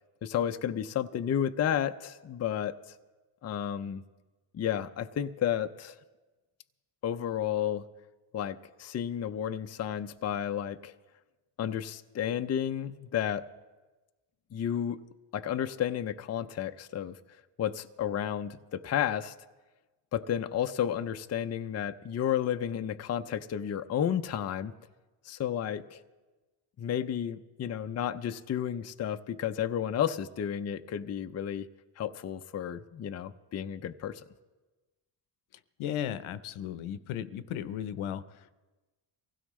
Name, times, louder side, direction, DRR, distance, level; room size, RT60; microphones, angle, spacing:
voice 1, 0.2-2.8 3.4-4.0 4.5-6.0 7.0-7.9 8.3-10.9 11.6-13.4 14.5-15.0 15.3-17.2 17.6-19.3 20.1-24.7 25.2-26.0 26.8-31.7 32.0-34.2, left 9 dB, 35° left, 8 dB, 0.5 m, -32 dB
voice 2, 35.8-38.5, left 10 dB, 75° left, 13 dB, 0.8 m, -36 dB
23.5 x 16.0 x 3.2 m, 1.2 s
cardioid pair, 100°, 49 cm